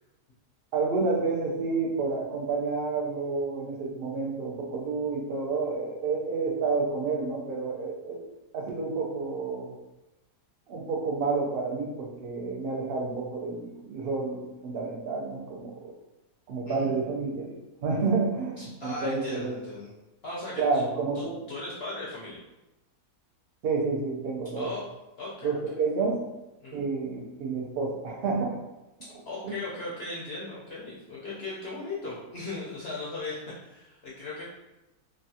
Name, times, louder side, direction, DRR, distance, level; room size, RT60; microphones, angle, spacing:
voice 1, 0.7-8.2 8.5-9.7 10.7-15.9 16.5-19.5 20.6-21.4 23.6-24.7 25.4-26.2 26.7-28.6 29.4-29.5, right 4 dB, 90° right, -1 dB, 0.5 m, -29 dB
voice 2, 18.6-19.9 20.2-20.8 21.1-22.4 24.6-24.8 25.2-25.8 26.6-26.8 29.3-34.4, left 2 dB, 65° left, -6 dB, 0.6 m, -38 dB
3.2 x 2.4 x 2.7 m, 0.99 s
omnidirectional pair, 1.7 m